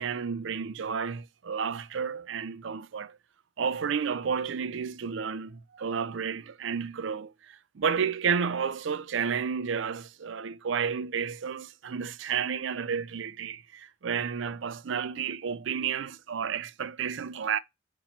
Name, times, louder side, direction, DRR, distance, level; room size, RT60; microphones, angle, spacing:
voice 1, 0.0-3.2 3.6-17.6, right 6 dB, 70° right, 0.4 m, -31 dB
8.6 x 3.0 x 5.6 m
head